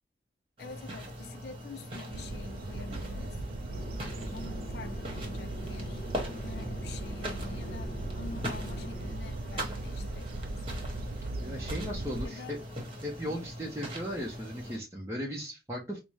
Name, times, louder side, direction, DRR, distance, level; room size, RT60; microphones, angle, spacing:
voice 1, 0.6-3.4 4.3-6.1 6.4-10.6 12.2-12.6, left 4 dB, 65° left, 0.4 m, -47 dB
sound 1, 0.6-14.8, equal, 30° right, 1.2 m, -41 dB
sound 2, 2.1-12.3, right 2 dB, 55° right, 0.3 m, -38 dB
Chatter / Fixed-wing aircraft airplane, 3.7-9.1, equal, 40° left, 0.9 m, -44 dB
voice 2, 11.4-12.6 13.0-16.0, equal, 15° right, 0.6 m, -37 dB
5.0 x 2.0 x 3.1 m
head